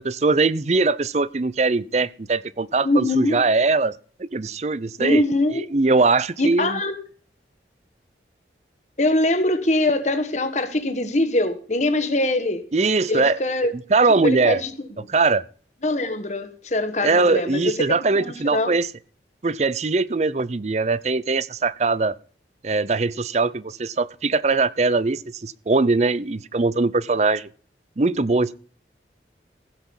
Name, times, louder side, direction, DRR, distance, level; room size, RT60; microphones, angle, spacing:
voice 1, 0.0-3.9 4.2-5.2 5.5-6.8 12.7-13.4 13.9-14.6 15.1-15.4 17.0-18.9 19.4-22.1 22.6-27.5 28.0-28.6, right 3 dB, 40° right, 0.5 m, -21 dB
voice 2, 2.8-3.4 5.0-5.7 6.4-7.0 9.0-12.7 13.1-13.7 14.2-14.7 15.0-15.1 15.8-18.7, left 1 dB, 40° left, 1.4 m, -23 dB
15.5 x 6.1 x 7.1 m
head